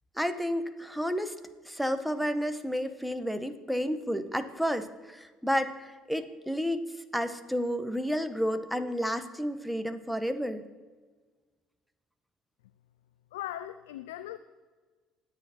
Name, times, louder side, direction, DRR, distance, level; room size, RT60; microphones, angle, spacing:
voice 1, 0.2-1.3 1.7-6.8 7.1-10.6, equal, ahead, 10 dB, 1.8 m, -31 dB
voice 2, 13.3-14.4, left 13 dB, 90° left, 12 dB, 0.5 m, -39 dB
28.0 x 9.7 x 4.7 m, 1.4 s
hypercardioid pair, 65°, 0 cm